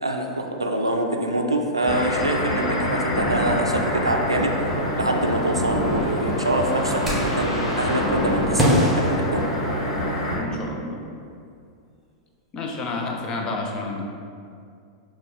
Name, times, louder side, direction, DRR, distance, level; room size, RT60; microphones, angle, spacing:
voice 1, 0.0-4.7 5.0-9.4, right 1 dB, 85° right, 2 dB, 0.4 m, -25 dB
sound 1, 1.9-10.4, equal, 70° left, 0.8 m, -25 dB
sound 2, 7.0-7.5 8.6-10.1, equal, ahead, 1.1 m, -23 dB
voice 2, 10.4-11.0 12.5-14.0, left 3 dB, 30° left, 1 dB, 0.5 m, -30 dB
5.7 x 2.4 x 3.3 m, 2.3 s
figure-of-eight pair, 95°, 3 cm